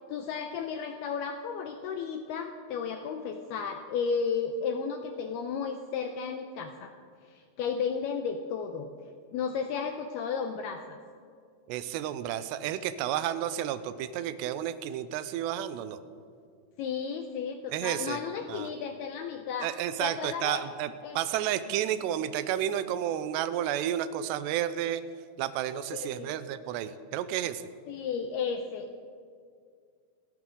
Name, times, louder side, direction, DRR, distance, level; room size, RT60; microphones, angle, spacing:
voice 1, 0.1-6.9 7.2-8.9 9.3-11.0 16.8-19.7 20.0-20.7 21.0-21.2 25.9-26.3 27.9-29.1, left 6 dB, 85° left, 5 dB, 2.2 m, -33 dB
voice 2, 11.7-16.0 17.7-18.2 18.5-18.7 19.6-25.0 25.4-27.7, right 11 dB, 85° right, 12 dB, 2.5 m, -31 dB
29.5 x 12.5 x 3.8 m, 2.2 s
omnidirectional pair, 5.6 m